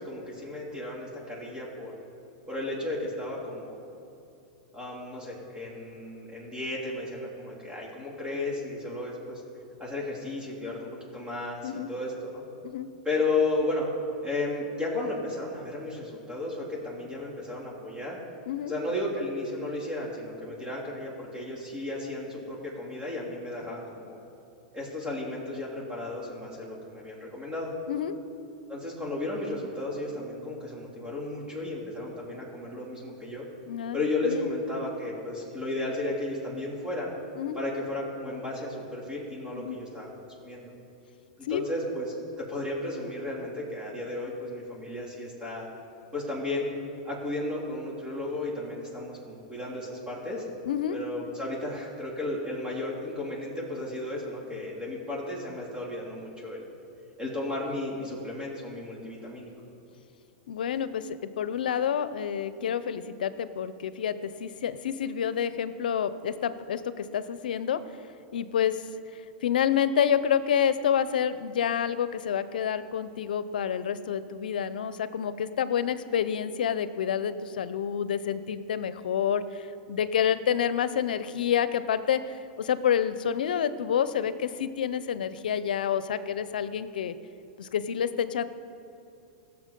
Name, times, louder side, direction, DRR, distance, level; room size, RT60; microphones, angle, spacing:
voice 1, 0.0-1.9 2.5-3.8 4.7-9.4 9.8-12.4 13.0-13.9 14.2-18.2 18.6-24.2 24.7-27.7 28.7-33.5 33.9-37.1 37.5-40.1 40.4-40.7 41.4-45.7 46.1-46.7 47.0-50.4 50.9-56.7 57.2-59.5, left 2 dB, 15° right, -5 dB, 3.3 m, -34 dB
voice 2, 33.7-34.0 34.2-34.5 37.4-37.6 39.5-39.8 41.5-41.6 50.7-51.0 60.5-67.8 68.3-68.8 69.1-87.1 87.6-88.4, left 8 dB, 85° left, 14 dB, 0.6 m, -28 dB
16.5 x 7.0 x 5.2 m, 2.7 s
hypercardioid pair, 125°, 5 cm